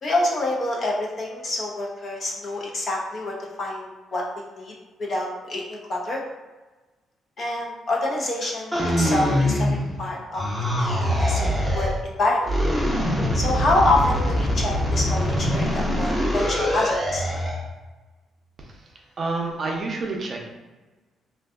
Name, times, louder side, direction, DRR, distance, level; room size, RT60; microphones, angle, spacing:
voice 1, 0.0-4.7 5.0-6.2 7.4-9.7 10.0-12.5 13.3-17.2, left 2 dB, 50° left, -2 dB, 0.6 m, -26 dB
sound 1, 8.7-10.0 10.3-12.0 12.4-17.6, equal, ahead, 0.6 m, -23 dB
voice 2, 19.2-20.4, right 3 dB, 50° right, 0 dB, 0.5 m, -28 dB
2.6 x 2.2 x 2.3 m, 1.2 s
supercardioid pair, 70°, 0 cm